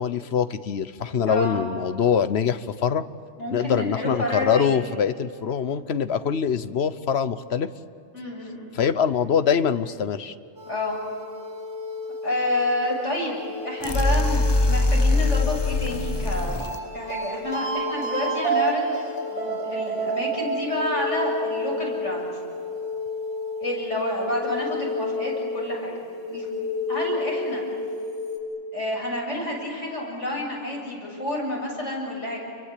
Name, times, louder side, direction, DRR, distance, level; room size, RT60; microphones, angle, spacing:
voice 1, 0.0-3.0 3.5-7.7 8.7-10.3, left 7 dB, 65° left, 13 dB, 1.2 m, -24 dB
voice 2, 1.2-1.6 3.4-4.8 8.1-8.7 10.7-11.0 12.2-16.6 16.9-18.9 19.3-22.3 23.6-25.9 26.3-27.7 28.7-32.4, left 1 dB, 85° left, -2 dB, 8.0 m, -29 dB
sound 1, 10.6-28.4, equal, 70° right, 4.4 m, -30 dB
sound 2, 13.8-16.8, left 2 dB, 25° left, 0.8 m, -22 dB
30.0 x 23.5 x 8.4 m, 2.6 s
omnidirectional pair, 1.2 m